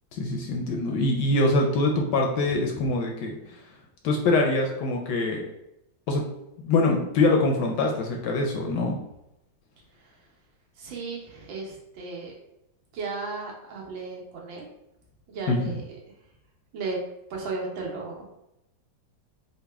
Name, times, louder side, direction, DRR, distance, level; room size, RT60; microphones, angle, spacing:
voice 1, 0.1-3.3 4.0-5.4 6.1-6.2 6.6-8.9 15.5-15.7, left 2 dB, 75° left, 1 dB, 1.1 m, -24 dB
voice 2, 10.8-12.3 12.9-14.7 15.3-15.8 16.7-17.0 17.3-18.3, right 3 dB, 75° right, -2 dB, 1.6 m, -35 dB
4.0 x 2.2 x 3.3 m, 0.87 s
omnidirectional pair, 2.1 m